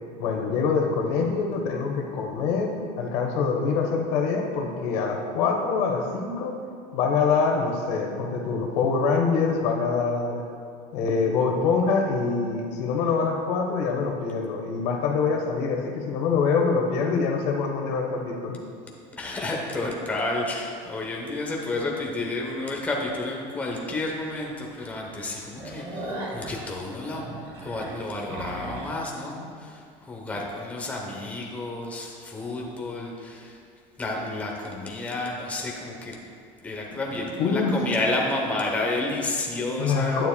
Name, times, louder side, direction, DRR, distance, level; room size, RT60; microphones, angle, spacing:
voice 1, 0.2-6.5 6.9-10.4 10.9-18.6 27.2-27.3 28.3-28.4 29.3-29.4 36.9-37.1 37.4-37.7 39.8-40.3, left 5 dB, 85° left, 2 dB, 1.2 m, -25 dB
voice 2, 19.2-27.4 27.6-33.6 34.0-36.2 36.6-40.2, left 2 dB, 10° left, -2 dB, 0.8 m, -30 dB
sound 1, 23.7-23.8 24.3-24.4 24.7-24.8 25.2-29.0, right 1 dB, 40° right, 1.7 m, -37 dB
9.9 x 9.1 x 2.2 m, 2.2 s
cardioid pair, 170°, 15 cm